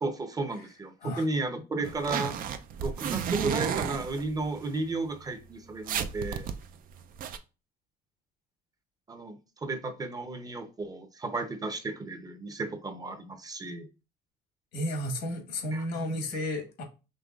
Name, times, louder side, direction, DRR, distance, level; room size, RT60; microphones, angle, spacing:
voice 1, 0.0-2.4 2.8-6.5 9.1-13.9 15.7-16.1, right 3 dB, 20° right, 0.7 m, -34 dB
sound 1, 1.8-4.6 5.2-5.3 5.5-5.6 5.9-7.4, right 8 dB, 55° right, 0.5 m, -32 dB
voice 2, 14.7-16.8, left 1 dB, 85° left, 1.5 m, -32 dB
5.3 x 3.1 x 2.4 m
cardioid pair, 110°, 17 cm